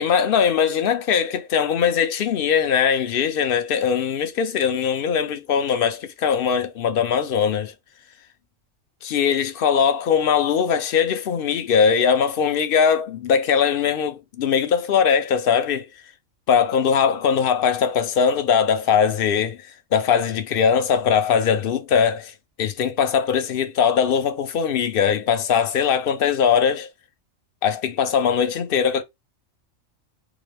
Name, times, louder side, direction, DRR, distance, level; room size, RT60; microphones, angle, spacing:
voice 1, 0.0-7.7 9.0-15.9 16.5-22.3 22.6-26.9 27.6-29.0, left 7 dB, 55° left, 0.7 m, -20 dB
3.8 x 2.5 x 3.3 m
omnidirectional pair, 1.4 m